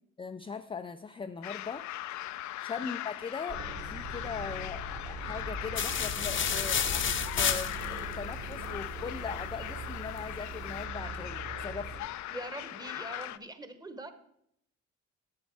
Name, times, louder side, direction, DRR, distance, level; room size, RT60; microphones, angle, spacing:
voice 1, 0.2-1.9 2.6-7.1 7.4-12.0, left 5 dB, 20° left, 8 dB, 0.4 m, -40 dB
sound 1, 1.4-13.4, left 14 dB, 70° left, 0.5 m, -40 dB
sound 2, 3.5-12.0, right 2 dB, 60° right, 3.5 m, -41 dB
sound 3, 5.8-8.1, left 7 dB, 40° left, 0.8 m, -30 dB
voice 2, 12.3-14.1, right 1 dB, 15° right, 9 dB, 1.2 m, -43 dB
10.5 x 8.2 x 4.6 m, 0.72 s
cardioid pair, 90°, 30 cm